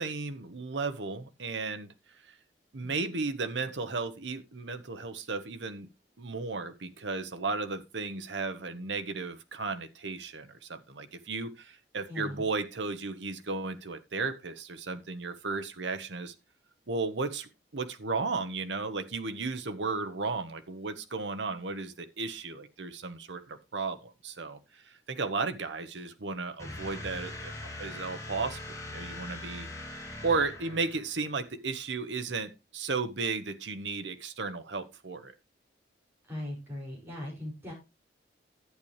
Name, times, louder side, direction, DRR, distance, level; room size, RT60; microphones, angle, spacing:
voice 1, 0.0-1.9 2.3-2.4 2.7-5.9 6.2-16.3 16.9-27.5 27.8-28.6 28.9-29.7 30.2-35.3, right 4 dB, 85° right, 1.0 m, -34 dB
voice 2, 2.8-3.1 12.1-12.4 36.2-37.7, left 1 dB, 15° right, 5.8 m, -39 dB
sound 1, 26.6-31.3, left 2 dB, 15° left, 2.4 m, -41 dB
11.5 x 8.7 x 3.2 m
head